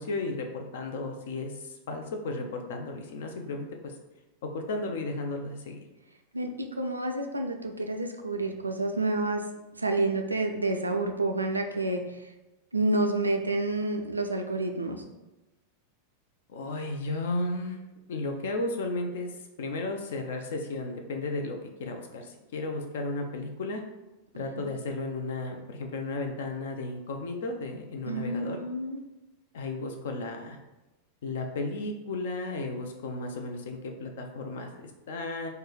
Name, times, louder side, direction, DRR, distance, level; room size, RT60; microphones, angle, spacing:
voice 1, 0.0-3.9 4.4-5.8 16.5-17.8 18.1-23.8 24.4-28.6 29.5-30.6 31.2-35.5, left 2 dB, 60° left, 4 dB, 0.4 m, -34 dB
voice 2, 6.3-9.4 9.8-12.0 12.7-15.0 24.4-24.7 28.1-29.0, right 2 dB, 80° right, 4 dB, 0.3 m, -29 dB
3.1 x 2.1 x 3.7 m, 1.0 s
figure-of-eight pair, 90°, 0 cm